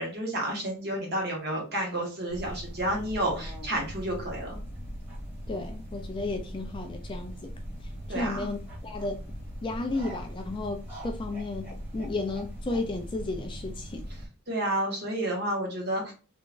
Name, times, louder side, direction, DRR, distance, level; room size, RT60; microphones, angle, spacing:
voice 1, 0.0-4.6 8.1-8.5 14.5-16.1, right 1 dB, 50° right, 1.4 m, -30 dB
sound 1, 2.3-14.3, equal, 10° right, 1.5 m, -40 dB
voice 2, 5.5-7.5 8.1-9.2 9.6-14.1, left 2 dB, 20° left, 0.3 m, -33 dB
3.5 x 3.0 x 2.5 m
head